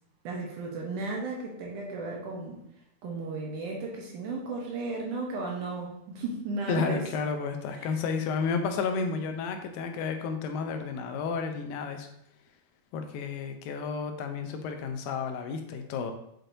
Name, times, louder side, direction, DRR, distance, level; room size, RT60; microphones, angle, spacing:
voice 1, 0.2-2.6 3.0-7.0 7.7-7.9, right 3 dB, 75° right, -1 dB, 2.1 m, -34 dB
voice 2, 6.7-12.1 12.9-16.1, left 5 dB, 80° left, 6 dB, 2.3 m, -31 dB
6.5 x 5.9 x 2.6 m, 0.75 s
omnidirectional pair, 4.2 m